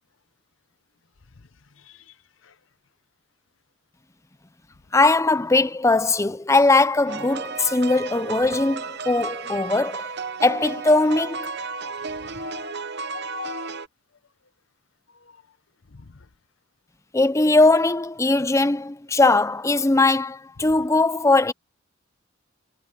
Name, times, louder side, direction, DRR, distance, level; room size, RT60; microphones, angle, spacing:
voice 1, 4.9-10.1 10.4-11.5 17.1-21.5, left 2 dB, 15° left, 0.6 m, -20 dB
sound 1, 7.1-13.9, right 4 dB, 55° right, 0.9 m, -33 dB
voice 2, 11.6-13.7 15.9-16.2, left 6 dB, 75° left, 0.9 m, -41 dB
head